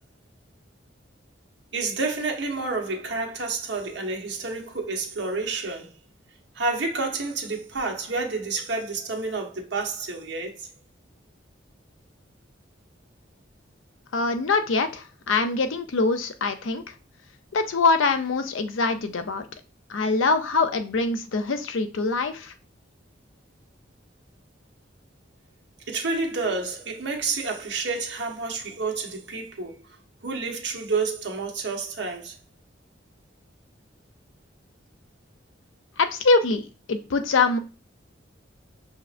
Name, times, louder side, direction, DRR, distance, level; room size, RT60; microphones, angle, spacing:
voice 1, 1.7-5.9 6.5-10.7 25.9-29.8 30.2-32.4, right 3 dB, 65° right, 0.9 m, -29 dB
voice 2, 14.1-16.8 17.5-19.5 19.9-22.5 36.0-36.6 36.9-37.6, left 3 dB, 85° left, 0.5 m, -23 dB
5.9 x 2.8 x 2.5 m
head